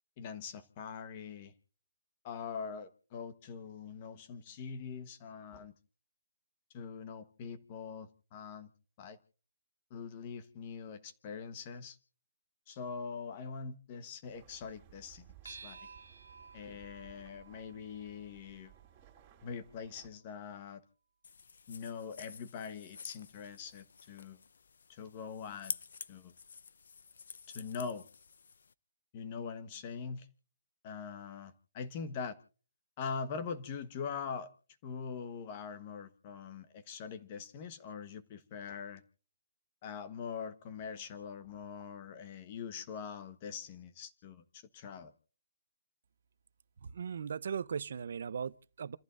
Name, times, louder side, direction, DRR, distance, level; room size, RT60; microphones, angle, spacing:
voice 1, 0.2-1.5 2.2-5.7 6.7-8.7 9.0-9.2 9.9-12.0 12.7-15.8 16.5-18.7 19.4-20.8 21.7-24.4 24.9-25.8 26.1-26.3 27.5-28.1 29.1-30.3 30.8-32.4 33.0-34.5 34.8-39.0 39.8-45.1, left 6 dB, 20° left, 1.2 m, -43 dB
sound 1, 14.2-20.1, right 12 dB, 15° right, 3.5 m, -60 dB
sound 2, 15.4-20.2, right 5 dB, 85° right, 1.8 m, -55 dB
sound 3, 21.2-28.7, left 5 dB, 55° left, 0.6 m, -48 dB
voice 2, 46.8-49.0, right 7 dB, 50° right, 0.7 m, -38 dB
29.5 x 14.5 x 2.6 m
hypercardioid pair, 175°, 0 cm